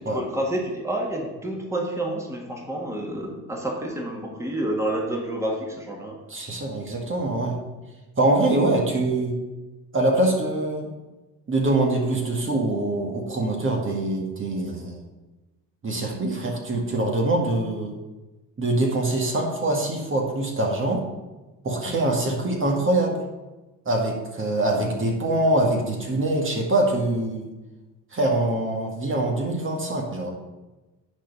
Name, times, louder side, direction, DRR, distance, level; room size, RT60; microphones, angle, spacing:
voice 1, 0.0-6.2, right 1 dB, 10° right, 0 dB, 1.8 m, -29 dB
voice 2, 6.3-7.6 8.2-9.3 9.9-10.9 11.5-15.0 15.8-17.9 18.6-21.0 21.6-23.2 23.9-27.5 28.1-30.3, right 2 dB, 35° right, 0 dB, 1.9 m, -24 dB
10.0 x 4.5 x 5.5 m, 1.1 s
supercardioid pair, 80°, 34 cm